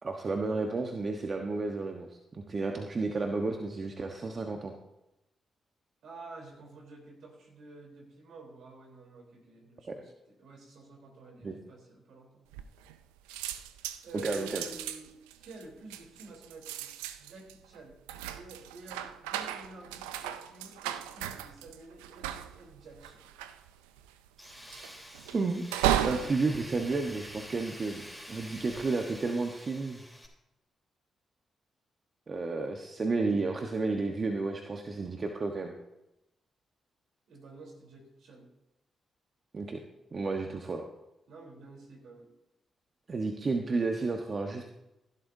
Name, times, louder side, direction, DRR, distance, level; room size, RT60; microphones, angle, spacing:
voice 1, 0.0-4.7 9.9-10.0 11.4-11.6 14.2-14.6 25.3-25.6 26.0-28.0 28.3-30.0 32.3-35.7 39.5-39.8 40.1-40.9 43.1-44.6, right 3 dB, 45° right, 3 dB, 1.2 m, -32 dB
voice 2, 6.0-12.4 14.0-16.9 17.2-23.3 37.3-38.5 41.3-42.3, right 2 dB, 70° right, 0 dB, 3.7 m, -50 dB
sound 1, 12.5-13.0 13.3-27.8 28.4-28.8, right 11 dB, 90° right, 0.4 m, -36 dB
Tools, 24.4-30.3, equal, 10° right, 3.7 m, -48 dB
15.0 x 12.0 x 2.7 m, 0.93 s
hypercardioid pair, 45°, 0 cm